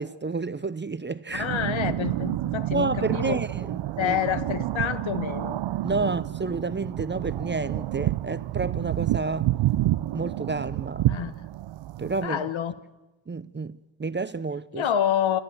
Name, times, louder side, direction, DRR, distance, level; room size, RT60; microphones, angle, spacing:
voice 1, 0.0-1.5 2.7-4.2 5.8-9.5 10.1-11.1 12.0-12.4 13.3-14.8, right 4 dB, 20° right, 0.7 m, -30 dB
voice 2, 1.3-3.4 4.0-5.6 6.0-6.2 11.1-11.4 12.2-12.7 14.7-15.4, left 9 dB, 70° left, 1.4 m, -28 dB
sound 1, 1.3-12.3, right 15 dB, 65° right, 0.6 m, -29 dB
28.0 x 13.5 x 7.8 m
cardioid pair, 60°, 49 cm